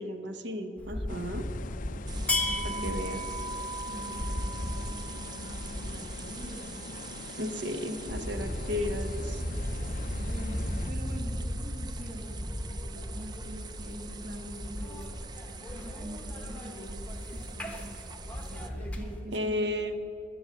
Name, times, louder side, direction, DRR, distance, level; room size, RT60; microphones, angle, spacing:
voice 1, 0.0-1.5 2.6-3.2 7.4-9.4 19.3-19.9, left 1 dB, 65° right, 8 dB, 1.0 m, -34 dB
sound 1, 0.8-19.2, left 1 dB, 5° left, 0.9 m, -36 dB
sound 2, 1.1-10.9, left 5 dB, 45° left, 0.3 m, -45 dB
voice 2, 1.9-3.1 3.9-6.8 9.2-9.6 10.2-15.0 15.5-17.0 17.3-19.8, equal, 45° right, 1 dB, 1.7 m, -44 dB
sound 3, 2.1-18.7, right 6 dB, 25° right, 0.4 m, -46 dB
14.0 x 7.1 x 7.4 m, 2.8 s
head